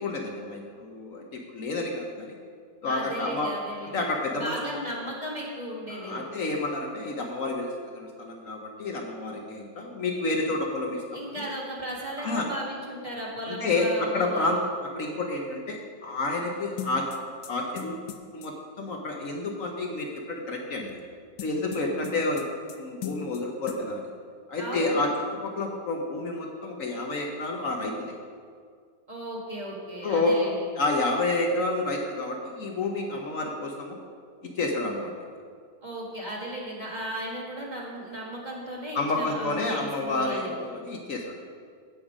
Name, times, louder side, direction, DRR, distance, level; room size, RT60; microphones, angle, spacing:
voice 1, 0.0-2.3 2.8-3.5 3.9-4.8 5.9-11.0 11.3-11.4 12.2-12.5 13.5-14.6 14.9-17.1 17.5-17.9 18.3-21.0 21.4-22.5 22.8-24.1 24.5-25.1 25.4-28.1 30.0-30.5 30.8-34.0 34.6-35.1 38.9-41.3, left 2 dB, 60° left, 1 dB, 1.2 m, -29 dB
voice 2, 2.8-4.1 4.3-6.3 11.1-14.6 21.7-22.0 24.6-25.0 29.1-30.7 35.8-40.5, equal, 25° right, -4 dB, 1.8 m, -36 dB
sound 1, 16.8-18.5 21.4-22.8 23.0-23.4 23.7-23.8, left 9 dB, 85° left, 1.4 m, -38 dB
16.0 x 5.7 x 5.0 m, 2.1 s
omnidirectional pair, 1.8 m